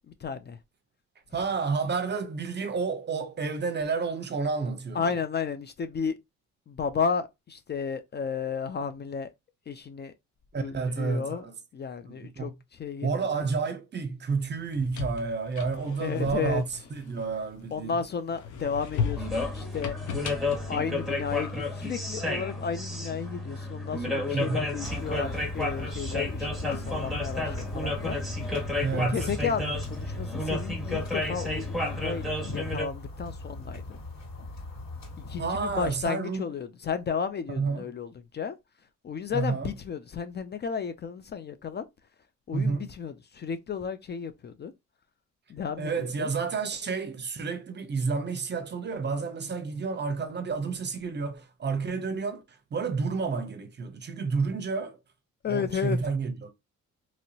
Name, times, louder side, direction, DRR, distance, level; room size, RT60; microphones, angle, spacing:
voice 1, 0.1-0.6 4.9-6.2 6.7-9.3 9.7-10.1 10.6-11.4 11.7-13.5 16.0-16.6 17.7-20.0 20.7-28.6 28.9-33.8 35.2-38.6 39.0-41.8 42.5-44.7 45.5-46.3 55.4-56.0, left 6 dB, 35° left, 0.4 m, -33 dB
voice 2, 1.3-5.0 10.5-11.5 12.1-12.5 13.0-16.6 16.9-18.0 21.6-21.7 24.3-24.7 28.8-29.3 35.4-36.5 37.5-37.9 39.3-39.7 42.5-42.9 45.8-55.0 55.5-56.5, right 4 dB, 35° right, 0.7 m, -30 dB
sound 1, 14.6-17.8 18.3-21.7, left 6 dB, 75° left, 0.8 m, -36 dB
sound 2, 19.2-32.9, left 2 dB, ahead, 1.6 m, -32 dB
sound 3, 24.8-36.0, left 2 dB, 60° left, 2.3 m, -40 dB
3.0 x 2.7 x 2.7 m
cardioid pair, 90°, 30 cm